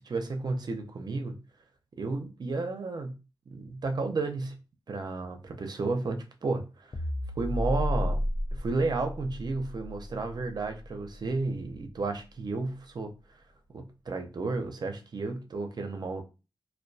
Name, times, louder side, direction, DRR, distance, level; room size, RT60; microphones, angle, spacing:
voice 1, 0.0-1.4 2.0-3.1 3.5-4.6 4.9-6.9 7.4-8.2 8.5-13.1 13.7-16.2, right 3 dB, 60° right, 0.5 m, -32 dB
sound 1, 6.9-11.4, left 1 dB, 25° left, 0.3 m, -33 dB
2.2 x 2.2 x 2.6 m
cardioid pair, 55°, 8 cm